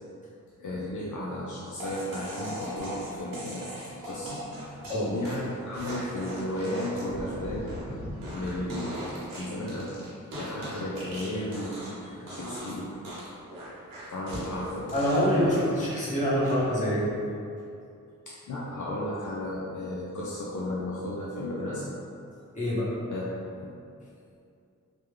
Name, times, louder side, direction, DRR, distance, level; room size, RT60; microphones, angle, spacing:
voice 1, 0.6-7.7 8.3-9.0 9.3-9.9 10.4-13.0 14.1-14.9 15.3-15.5 18.3-21.9 23.1-23.3 23.6-23.7, left 1 dB, 65° left, -6 dB, 0.5 m, -34 dB
sound 1, 1.8-12.0 12.3-12.7 13.0-16.1 16.4-16.9, right 1 dB, 90° right, 0.9 m, -39 dB
voice 2, 14.9-17.1 22.5-22.9, equal, 20° left, -9 dB, 1.3 m, -25 dB
3.4 x 2.2 x 3.2 m, 2.5 s
cardioid pair, 50°, 33 cm